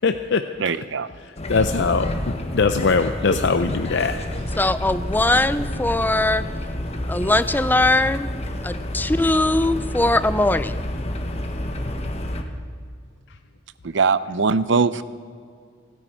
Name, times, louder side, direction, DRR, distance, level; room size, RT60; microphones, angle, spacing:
voice 1, 0.0-0.7 1.2-4.2, left 4 dB, 65° left, 8 dB, 0.6 m, -22 dB
voice 2, 0.6-1.1 13.8-15.0, right 4 dB, 70° right, 15 dB, 0.6 m, -21 dB
sound 1, 1.4-12.4, left 1 dB, 35° left, 1.2 m, -29 dB
voice 3, 4.6-6.4 7.1-8.3 8.6-10.8, left 2 dB, 10° left, 14 dB, 0.5 m, -20 dB
30.0 x 10.0 x 4.5 m, 2.1 s
head